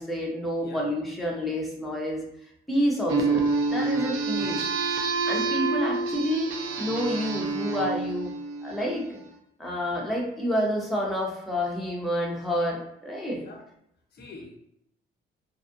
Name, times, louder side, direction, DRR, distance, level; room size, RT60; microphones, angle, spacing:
voice 1, 0.0-2.3 2.7-4.6 5.2-8.3 8.6-9.2 9.6-13.4, equal, ahead, -3 dB, 0.7 m, -29 dB
sound 1, 3.1-9.1, right 4 dB, 85° right, 0.5 m, -28 dB
voice 2, 3.8-4.7 13.3-13.6 14.1-14.6, left 4 dB, 55° left, 1 dB, 0.5 m, -46 dB
2.6 x 2.3 x 2.5 m, 0.76 s
cardioid pair, 90°, 20 cm